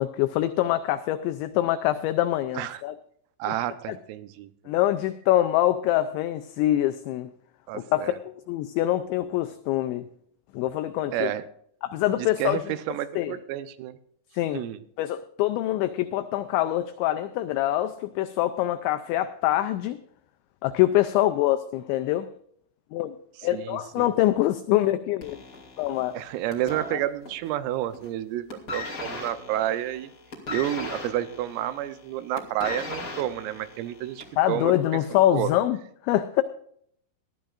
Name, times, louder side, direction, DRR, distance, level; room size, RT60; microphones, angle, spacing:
voice 1, 0.0-2.9 3.5-3.6 3.9-4.0 4.7-7.3 7.7-10.1 10.5-11.3 11.8-12.6 13.2-13.3 14.3-14.6 15.0-20.0 20.6-22.3 22.9-23.2 23.4-25.4 25.8-26.2 26.9-27.0 34.4-35.8 36.0-36.4, left 14 dB, 90° left, 9 dB, 2.6 m, -25 dB
voice 2, 3.4-4.7 7.7-8.2 11.1-11.5 12.2-14.0 14.5-14.8 23.5-24.1 26.1-30.1 30.5-34.7 35.1-35.5, right 13 dB, 85° right, 12 dB, 3.5 m, -30 dB
sound 1, 25.2-27.5 27.8-28.2 28.5-34.5 35.3-35.4, left 3 dB, 35° left, 1.8 m, -38 dB
20.0 x 13.0 x 2.5 m, 0.67 s
omnidirectional pair, 5.9 m